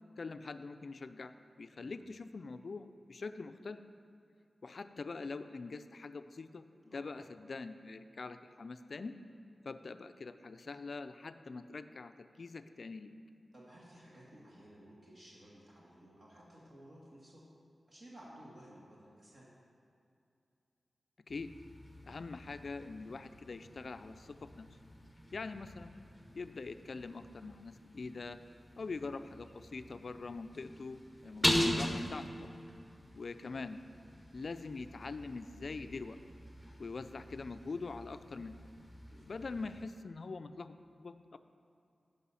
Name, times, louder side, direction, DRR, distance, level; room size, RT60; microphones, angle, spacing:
voice 1, 0.2-3.8 4.6-9.1 9.6-13.1 21.3-21.5 22.1-24.7 25.3-26.0 26.3-28.4 28.8-32.5 33.1-33.8 34.3-36.2 36.8-38.5 39.2-41.4, left 4 dB, 55° left, 10 dB, 0.4 m, -44 dB
voice 2, 13.5-17.5 17.9-19.5 31.2-31.4 39.1-39.4, right 1 dB, 45° right, -6 dB, 1.6 m, -56 dB
sound 1, 21.3-39.8, left 1 dB, 5° left, 0.9 m, -41 dB
10.0 x 5.5 x 5.7 m, 2.5 s
wide cardioid pair, 135°, 0 cm